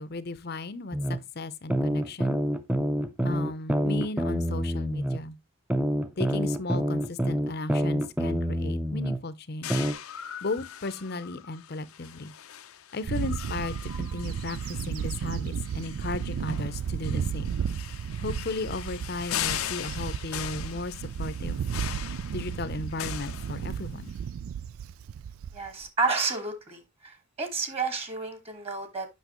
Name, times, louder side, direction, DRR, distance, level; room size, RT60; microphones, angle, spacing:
voice 1, 0.0-2.4 3.2-5.4 6.2-9.9 10.4-12.3 12.9-17.6 18.2-21.6 22.1-24.1, left 3 dB, 50° left, 0.6 m, -35 dB
sound 1, 0.9-1.2 1.7-5.2 5.7-9.2 9.7-9.9, equal, 5° right, 0.5 m, -27 dB
sound 2, 9.6-24.1, left 10 dB, 90° left, 0.7 m, -40 dB
Bird / Wind, 13.1-25.9, right 7 dB, 75° right, 0.3 m, -33 dB
voice 2, 25.5-29.1, right 4 dB, 30° right, 1.5 m, -31 dB
8.2 x 6.1 x 3.0 m
head